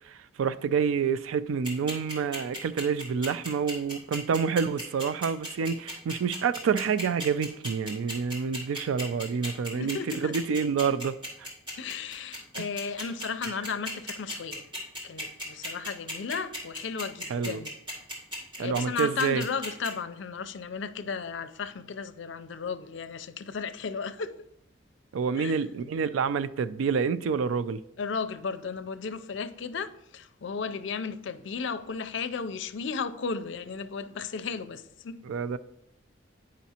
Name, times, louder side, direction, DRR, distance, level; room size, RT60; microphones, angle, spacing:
voice 1, 0.1-11.1 11.4-11.5 17.3-17.6 18.6-19.4 25.1-27.8 35.3-35.6, right 6 dB, 90° right, 0.3 m, -28 dB
sound 1, 1.6-19.9, equal, 25° right, 1.9 m, -36 dB
voice 2, 9.7-10.3 11.8-14.6 15.0-17.8 18.6-24.3 25.4-25.6 28.0-35.2, left 5 dB, 65° left, 0.4 m, -34 dB
9.1 x 5.1 x 2.8 m
head